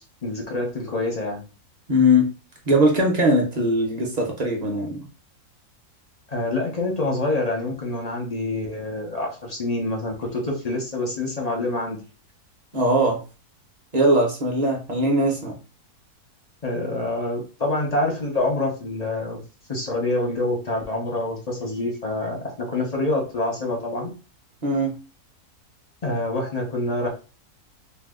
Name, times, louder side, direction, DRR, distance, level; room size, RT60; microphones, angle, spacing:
voice 1, 0.2-1.4 6.3-12.0 16.6-19.4 19.7-24.1 26.0-27.1, left 2 dB, 40° left, 0.5 m, -26 dB
voice 2, 1.9-2.3 2.7-5.0 12.7-13.2 13.9-15.6 24.6-25.0, equal, 40° right, 0.6 m, -20 dB
2.7 x 2.2 x 3.6 m
omnidirectional pair, 1.6 m